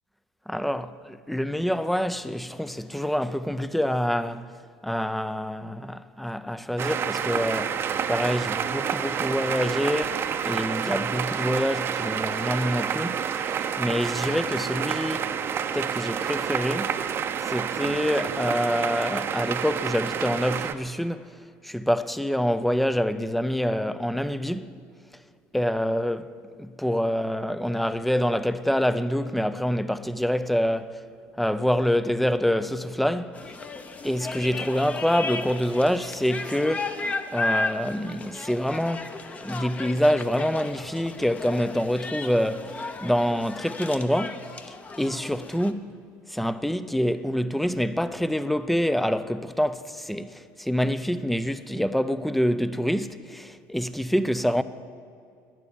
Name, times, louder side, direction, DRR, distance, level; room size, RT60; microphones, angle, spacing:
voice 1, 0.5-0.9 1.3-4.5 4.8-7.8 8.1-15.3 15.7-17.0 17.4-21.3 21.6-24.8 25.5-31.0 31.4-33.4 34.0-37.0 37.3-39.1 39.4-44.5 45.0-54.6, equal, ahead, 0.5 m, -26 dB
sound 1, 6.8-20.7, right 8 dB, 40° right, 0.8 m, -29 dB
sound 2, 33.3-45.7, left 3 dB, 20° left, 0.9 m, -34 dB
12.5 x 10.5 x 10.0 m
cardioid pair, 130°, 6 cm